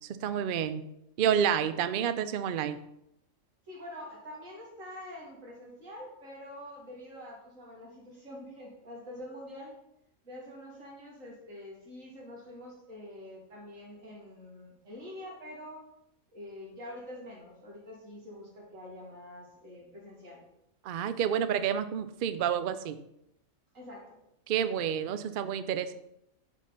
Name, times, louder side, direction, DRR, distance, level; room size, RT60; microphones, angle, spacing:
voice 1, 0.2-0.9 1.2-2.8 20.8-23.0 24.5-25.9, right 8 dB, 60° right, 11 dB, 0.5 m, -29 dB
voice 2, 3.7-9.7 10.2-15.8 16.3-20.4 23.7-24.2, left 1 dB, 80° right, -3 dB, 2.7 m, -46 dB
7.0 x 4.5 x 5.6 m, 0.80 s
omnidirectional pair, 1.3 m